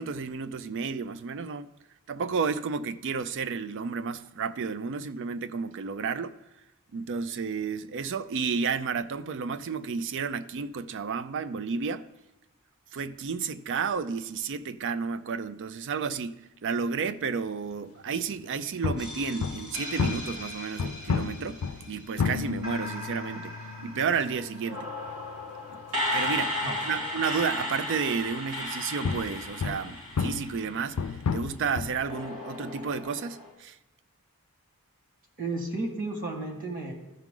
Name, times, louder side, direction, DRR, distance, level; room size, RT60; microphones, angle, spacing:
voice 1, 0.0-1.7 2.1-6.4 6.9-12.1 12.9-23.5 23.8-24.9 25.7-25.8 26.1-33.8, right 5 dB, 55° right, 0.4 m, -32 dB
sound 1, 18.8-27.8 28.5-32.1, left 5 dB, 90° left, 0.4 m, -33 dB
sound 2, 19.0-22.2 22.6-31.0 32.0-33.5, left 1 dB, 85° right, 2.7 m, -36 dB
voice 2, 26.6-27.0 35.4-36.9, right 2 dB, 40° right, 1.8 m, -33 dB
13.5 x 6.1 x 3.8 m
head